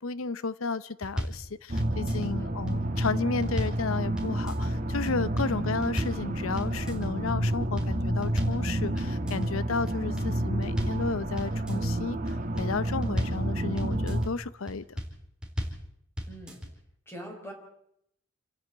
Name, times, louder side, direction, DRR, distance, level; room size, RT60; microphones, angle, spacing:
voice 1, 0.0-14.8, left 4 dB, 85° left, 0.7 m, -33 dB
sound 1, 1.0-1.4 1.8-2.3 2.7-3.8 4.2-4.7 5.1-5.5 5.8-6.2 6.6-7.1 7.5-8.6 9.0-9.5 9.9-11.0 11.4-11.9 12.3-13.4 13.8-14.3 14.7-15.1 15.4-15.8 16.2-16.7, equal, 5° right, 4.1 m, -34 dB
sound 2, 1.7-14.3, right 1 dB, 40° right, 1.5 m, -30 dB
voice 2, 16.3-16.6 17.1-17.5, right 1 dB, 10° left, 4.8 m, -44 dB
28.0 x 10.5 x 9.1 m
head